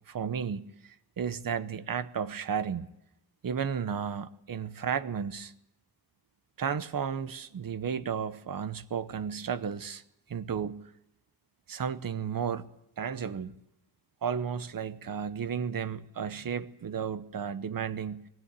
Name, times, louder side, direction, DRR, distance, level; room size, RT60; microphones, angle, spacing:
voice 1, 0.1-2.9 3.4-5.5 6.6-10.0 10.3-10.9 11.7-12.7 13.0-13.5 14.2-18.3, right 7 dB, 60° right, 0.9 m, -33 dB
20.5 x 17.0 x 8.2 m
wide cardioid pair, 175°, 39 cm